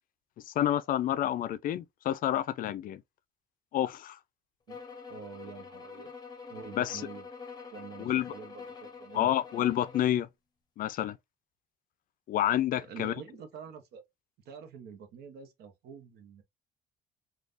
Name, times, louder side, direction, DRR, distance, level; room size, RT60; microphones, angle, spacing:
voice 1, 0.5-3.0 3.7-4.2 6.7-7.0 8.0-8.3 9.1-10.3 10.8-11.2 12.3-13.1, left 12 dB, 55° left, 0.4 m, -29 dB
sound 1, 4.7-10.2, left 5 dB, 25° left, 0.8 m, -46 dB
voice 2, 5.1-6.1 6.5-7.3 7.7-9.3 12.9-14.0 14.5-16.4, right 6 dB, 75° right, 0.8 m, -47 dB
3.4 x 2.3 x 2.5 m
cardioid pair, 110°, 17 cm